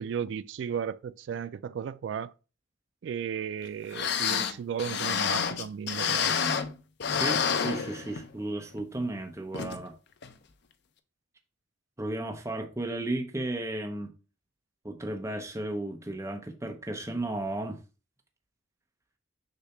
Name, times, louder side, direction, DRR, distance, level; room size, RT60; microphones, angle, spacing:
voice 1, 0.0-2.3 3.0-6.4, right 7 dB, 65° right, 0.3 m, -35 dB
sound 1, 3.6-3.7 3.9-6.7 7.0-8.4 8.8-8.9 9.5-9.8 10.2-10.3, left 7 dB, 65° left, 0.6 m, -29 dB
voice 2, 7.1-9.9 12.0-14.1 14.8-17.8, right 1 dB, 15° right, 0.8 m, -34 dB
6.7 x 2.8 x 5.7 m
head